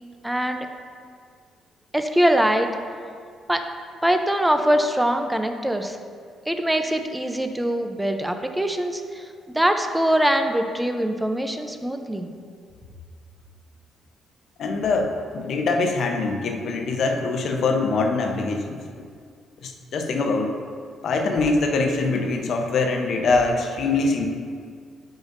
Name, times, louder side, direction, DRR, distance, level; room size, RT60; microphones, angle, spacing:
voice 1, 0.2-0.7 1.9-2.7 3.5-3.6 4.0-6.0 6.5-12.3, right 1 dB, 5° right, 6 dB, 0.6 m, -23 dB
voice 2, 14.6-18.8 19.6-20.5 21.0-24.3, left 3 dB, 65° left, 3 dB, 0.8 m, -23 dB
10.5 x 5.2 x 2.6 m, 2.1 s
cardioid pair, 90°, 0 cm